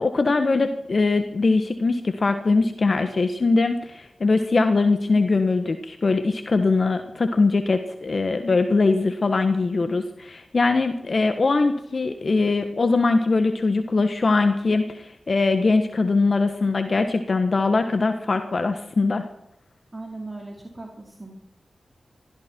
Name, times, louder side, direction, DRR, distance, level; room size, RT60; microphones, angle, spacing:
voice 1, 0.0-19.2, left 3 dB, 60° left, 8 dB, 1.4 m, -21 dB
voice 2, 19.9-21.3, right 2 dB, 30° right, 0 dB, 4.1 m, -38 dB
16.0 x 15.0 x 4.5 m, 0.81 s
cardioid pair, 45°, 0 cm